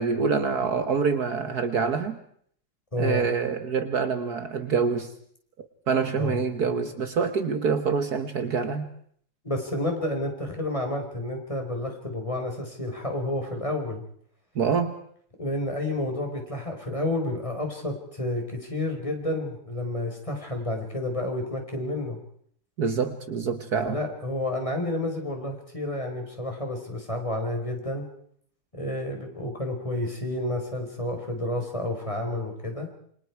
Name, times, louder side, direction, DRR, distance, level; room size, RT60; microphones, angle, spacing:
voice 1, 0.0-2.2 3.0-5.1 5.6-8.9 14.6-14.9 22.8-24.0, right 5 dB, 60° right, 9 dB, 1.8 m, -26 dB
voice 2, 2.9-3.3 6.2-6.4 9.4-14.0 15.4-22.2 23.9-28.1 28.7-32.9, left 1 dB, 15° left, 3 dB, 4.7 m, -30 dB
28.0 x 26.5 x 4.7 m, 0.63 s
omnidirectional pair, 2.0 m